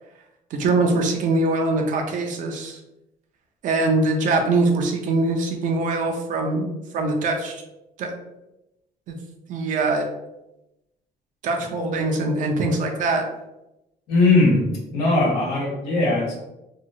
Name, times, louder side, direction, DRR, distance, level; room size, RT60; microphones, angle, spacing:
voice 1, 0.5-2.8 3.6-6.7 6.9-7.6 8.0-8.2 9.1-9.2 9.5-10.1 11.4-13.3, right 2 dB, 60° right, 3 dB, 0.5 m, -22 dB
voice 2, 14.1-16.3, left 2 dB, 85° left, -7 dB, 1.3 m, -19 dB
2.9 x 2.3 x 2.7 m, 0.91 s
cardioid pair, 135°, 15 cm